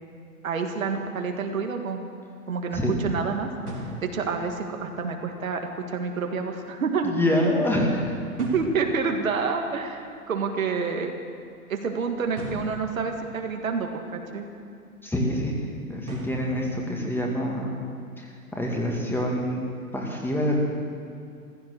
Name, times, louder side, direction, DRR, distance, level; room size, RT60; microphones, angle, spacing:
voice 1, 0.4-2.0 2.5-3.5 4.0-5.6 5.9-7.1 8.4-11.1 11.7-14.5, right 5 dB, 65° right, 4 dB, 2.0 m, -28 dB
sound 1, 3.6-5.8 6.1-6.4 6.8-6.9 7.1-7.2 8.2-11.3 11.5-14.4 14.7-15.0 15.5-17.3, equal, 90° right, 4.0 m, -41 dB
voice 2, 7.0-8.1 15.0-17.7 18.2-19.6 19.9-20.6, left 1 dB, 5° left, -1 dB, 2.0 m, -26 dB
15.5 x 13.5 x 6.5 m, 2.5 s
figure-of-eight pair, 115°, 44 cm